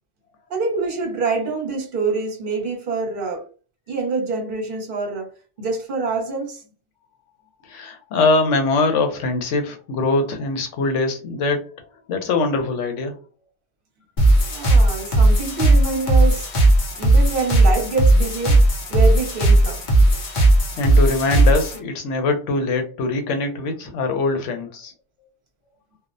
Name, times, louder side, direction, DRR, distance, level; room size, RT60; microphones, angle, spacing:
voice 1, 0.5-3.4 3.9-5.3 5.6-6.6 14.5-16.5 17.0-18.6 18.9-19.8, right 3 dB, 50° right, 0.9 m, -25 dB
voice 2, 7.6-11.6 12.1-13.2 20.8-24.9, left 3 dB, 85° left, 1.0 m, -22 dB
sound 1, 14.2-21.8, right 1 dB, 50° left, 0.6 m, -16 dB
2.4 x 2.0 x 2.5 m
omnidirectional pair, 1.2 m